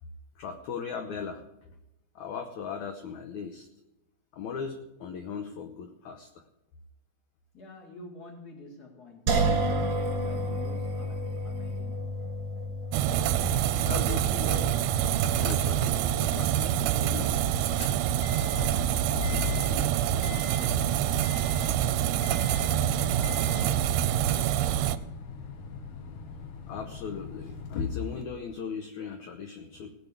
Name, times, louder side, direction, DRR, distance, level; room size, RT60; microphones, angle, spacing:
voice 1, 0.3-1.5 2.1-3.7 4.3-6.4 13.9-14.8 15.3-17.4 19.3-19.5 20.7-20.8 22.4-22.7 26.7-29.9, left 6 dB, 80° left, 5 dB, 1.7 m, -38 dB
voice 2, 7.5-12.1 18.2-24.0, left 3 dB, 30° left, -3 dB, 2.2 m, -49 dB
sound 1, 9.3-22.3, right 1 dB, 40° right, 2.2 m, -34 dB
sound 2, 12.9-25.0, right 11 dB, 80° right, 2.4 m, -26 dB
sound 3, 15.4-15.9 16.3-16.4 17.6-28.2, left 6 dB, 60° left, 2.2 m, -39 dB
17.0 x 7.1 x 8.3 m, 0.93 s
omnidirectional pair, 4.6 m